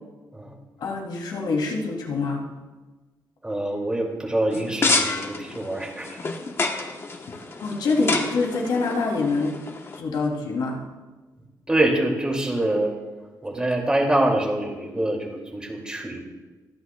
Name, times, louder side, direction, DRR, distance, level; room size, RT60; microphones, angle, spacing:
voice 1, 0.8-2.4 7.3-9.5 10.0-10.8, left 3 dB, 80° left, 0 dB, 2.9 m, -25 dB
voice 2, 3.4-6.2 11.7-13.0 13.4-16.2, right 1 dB, 10° right, 0 dB, 2.5 m, -25 dB
sound 1, 4.5-10.0, left 3 dB, 35° left, 1.1 m, -28 dB
27.0 x 10.0 x 2.3 m, 1.2 s
wide cardioid pair, 140°, 7 cm